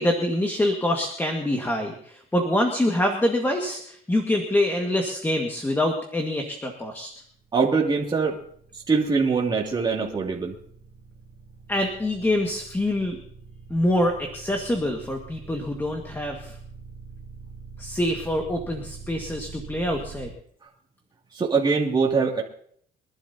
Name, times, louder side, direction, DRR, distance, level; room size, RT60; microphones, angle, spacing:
voice 1, 0.0-7.1 11.7-13.2 13.7-16.5 17.8-20.3, left 1 dB, 10° left, 2 dB, 1.8 m, -25 dB
sound 1, 7.0-20.3, right 6 dB, 60° right, 3.0 m, -44 dB
voice 2, 7.5-8.4 8.9-10.5 21.3-22.4, right 4 dB, 25° right, -2 dB, 2.6 m, -23 dB
25.0 x 11.5 x 2.9 m, 0.63 s
cardioid pair, 110°, 17 cm